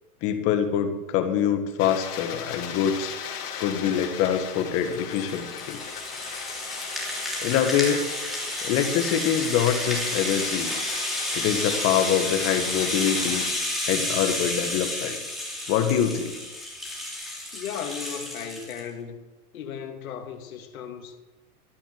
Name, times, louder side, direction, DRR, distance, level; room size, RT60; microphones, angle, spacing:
voice 1, 0.2-3.2 3.6-5.8 7.4-8.0 8.6-10.7 11.3-13.4 13.8-15.2 15.7-16.3, left 9 dB, 30° left, 1.8 m, -25 dB
sound 1, 1.8-13.5, left 7 dB, 80° left, 2.9 m, -38 dB
Rattle (instrument), 4.6-18.8, left 1 dB, ahead, 3.1 m, -31 dB
voice 2, 17.5-19.2 19.5-21.1, left 8 dB, 60° left, 2.6 m, -36 dB
13.5 x 12.0 x 7.7 m
hypercardioid pair, 150°, 46 cm